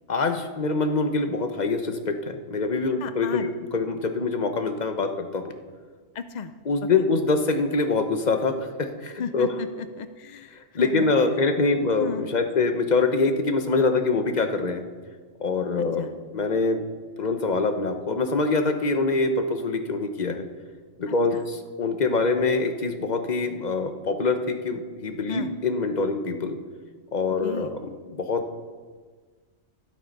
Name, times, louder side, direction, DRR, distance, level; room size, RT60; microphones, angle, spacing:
voice 1, 0.1-5.5 6.6-9.5 10.5-14.9 15.4-16.1 16.3-16.8 17.2-20.5 21.0-26.6 27.1-27.8 28.1-28.4, left 3 dB, 40° left, 6 dB, 1.0 m, -24 dB
voice 2, 3.0-3.5 6.1-6.5 9.2-11.1 12.0-12.2 16.0-16.1 21.3-21.4 25.3-25.5 27.4-27.7, left 5 dB, 60° left, 10 dB, 0.4 m, -34 dB
12.0 x 12.0 x 5.3 m, 1.5 s
omnidirectional pair, 1.3 m